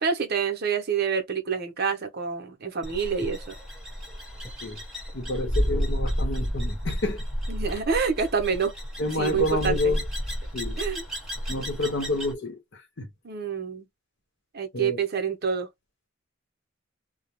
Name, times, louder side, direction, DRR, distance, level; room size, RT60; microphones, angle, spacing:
voice 1, 0.0-3.6 7.5-8.7 9.2-10.0 10.8-11.0 13.2-13.9 14.5-15.7, right 6 dB, 55° right, 0.7 m, -27 dB
sound 1, 2.8-12.3, equal, ahead, 0.9 m, -31 dB
voice 2, 5.1-7.2 9.0-10.0 10.5-10.8 11.5-13.1 14.7-15.0, left 2 dB, 60° left, 0.8 m, -29 dB
2.3 x 2.0 x 2.8 m
head